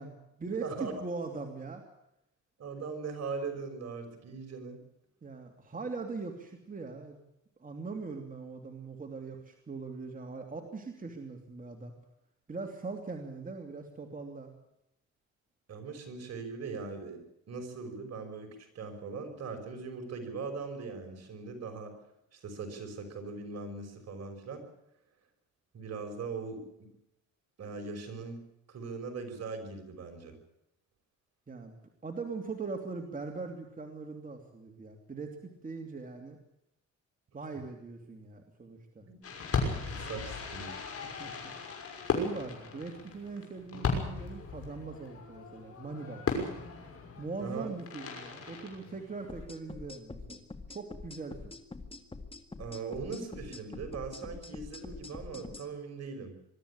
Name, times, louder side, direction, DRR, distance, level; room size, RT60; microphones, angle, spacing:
voice 1, 0.0-1.8 5.2-7.2 7.6-11.9 12.5-14.5 31.5-31.7 32.0-36.4 37.3-39.1 41.0-41.5 42.0-46.2 47.2-50.4 50.7-51.5, right 4 dB, 30° right, 3 dB, 2.9 m, -41 dB
voice 2, 0.6-1.0 2.6-4.8 15.7-17.2 17.5-21.9 22.3-24.6 25.7-26.6 27.6-28.4 28.7-30.4 39.0-39.2 39.6-40.7 47.4-47.7 52.6-56.3, right 4 dB, 55° right, 5 dB, 5.8 m, -40 dB
Fireworks, 39.2-49.4, left 4 dB, 50° left, 6.2 m, -37 dB
sound 1, 49.3-55.7, left 3 dB, 20° left, 2.1 m, -45 dB
22.5 x 13.5 x 10.0 m, 0.82 s
cardioid pair, 90°, 30 cm